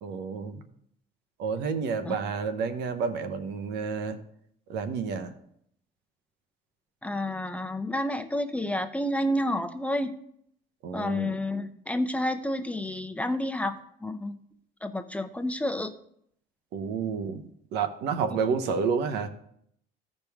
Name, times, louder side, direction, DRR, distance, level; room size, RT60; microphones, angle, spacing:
voice 1, 0.0-0.6 1.4-4.2 4.7-5.3 10.8-11.4 16.7-19.3, right 5 dB, 85° right, 10 dB, 0.9 m, -30 dB
voice 2, 7.0-10.1 10.9-14.4 14.8-15.9, left 1 dB, 10° left, 8 dB, 0.6 m, -30 dB
15.0 x 5.3 x 3.5 m, 0.71 s
cardioid pair, 110°, 17 cm